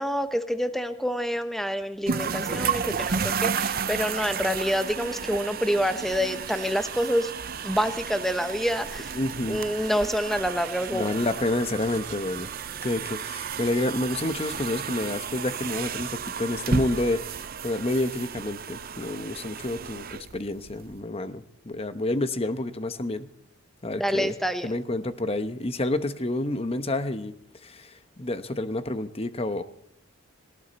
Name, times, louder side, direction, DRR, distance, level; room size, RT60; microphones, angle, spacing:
voice 1, 0.0-7.3 7.6-9.2 9.5-11.1 24.0-24.7, equal, ahead, 9 dB, 0.9 m, -27 dB
sound 1, 2.1-20.9, right 6 dB, 45° right, 0.6 m, -33 dB
sound 2, 6.1-16.1, right 5 dB, 65° right, 4.2 m, -48 dB
voice 2, 9.1-9.6 10.9-12.5 12.8-17.2 17.6-23.3 23.8-24.3 24.6-27.3 27.6-29.6, left 1 dB, 30° left, 11 dB, 0.9 m, -29 dB
19.0 x 18.0 x 4.2 m, 0.76 s
head